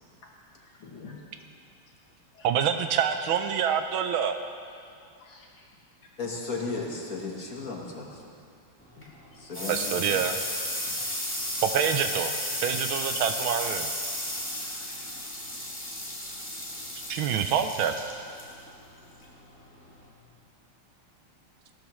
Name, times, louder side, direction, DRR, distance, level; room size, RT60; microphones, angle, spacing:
voice 1, 0.6-1.1 2.3-2.5 5.2-5.7 6.0-6.1 6.4-6.5 9.3-9.4 10.9-11.3 11.5-11.6 14.1-14.9, left 4 dB, 80° left, -3 dB, 2.8 m, -52 dB
voice 2, 2.4-4.4 9.6-10.4 11.6-12.3 12.6-13.9 17.1-17.9, right 8 dB, 75° right, 8 dB, 1.4 m, -26 dB
voice 3, 6.2-8.2 9.0-9.1 9.3-10.2 10.9-11.0, left 3 dB, 45° left, -1 dB, 1.5 m, -35 dB
sound 1, 8.8-20.1, left 1 dB, 5° left, 1.9 m, -34 dB
17.5 x 13.5 x 3.1 m, 2.4 s
omnidirectional pair, 2.4 m